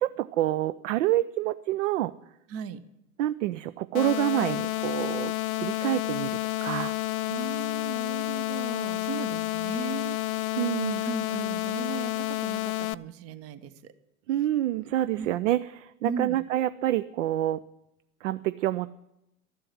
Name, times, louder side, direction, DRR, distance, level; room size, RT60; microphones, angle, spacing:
voice 1, 0.0-2.1 3.2-7.0 10.6-11.0 14.3-17.6 18.2-18.9, right 14 dB, 60° right, 15 dB, 0.6 m, -27 dB
voice 2, 2.5-2.8 7.3-10.6 11.0-13.9 15.2-15.3 16.0-16.4, right 6 dB, 35° right, 14 dB, 0.9 m, -37 dB
sound 1, 3.9-12.9, left 16 dB, 70° left, 0.6 m, -30 dB
13.5 x 7.7 x 9.9 m, 0.88 s
figure-of-eight pair, 95°, 43 cm